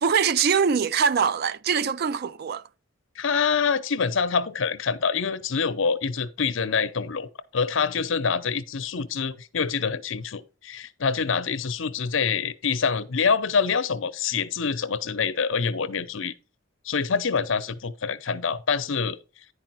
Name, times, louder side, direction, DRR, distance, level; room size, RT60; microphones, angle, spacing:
voice 1, 0.0-2.6, right 6 dB, 50° right, 0.3 m, -23 dB
voice 2, 3.2-16.3 16.8-19.2, left 5 dB, 70° left, 0.7 m, -26 dB
9.9 x 4.9 x 4.5 m
head